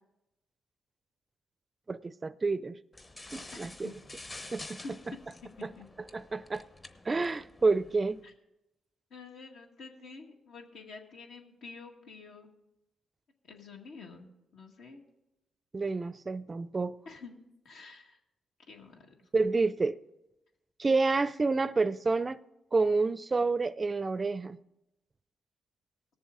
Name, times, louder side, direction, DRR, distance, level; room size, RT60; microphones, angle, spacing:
voice 1, 1.9-2.7 3.3-3.9 4.5-4.8 6.1-6.6 7.1-8.2 15.7-16.9 19.3-20.0 20.8-22.4 22.7-24.6, right 3 dB, 30° right, 0.4 m, -29 dB
sound 1, 2.9-8.2, left 2 dB, 30° left, 0.9 m, -49 dB
voice 2, 3.5-3.9 4.8-5.4 5.8-5.9 8.2-8.3 9.1-12.5 13.5-15.0 17.1-17.4 17.6-18.2 18.7-19.1, left 4 dB, 80° left, 1.9 m, -48 dB
18.5 x 7.1 x 3.8 m
cardioid pair, 80°, 0 cm